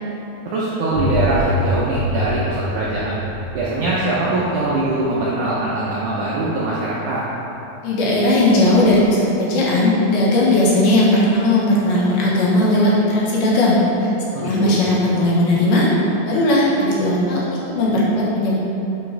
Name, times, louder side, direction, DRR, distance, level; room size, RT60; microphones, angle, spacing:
voice 1, 0.5-3.2 3.5-7.2 14.3-14.8, right 2 dB, 80° right, -7 dB, 1.8 m, -22 dB
sound 1, 0.9-6.4, left 1 dB, 60° right, 2.1 m, -26 dB
voice 2, 7.8-14.1 14.4-15.9 16.2-17.4 17.7-18.6, left 1 dB, 70° left, -6 dB, 3.0 m, -17 dB
9.6 x 5.3 x 3.4 m, 2.9 s
omnidirectional pair, 4.6 m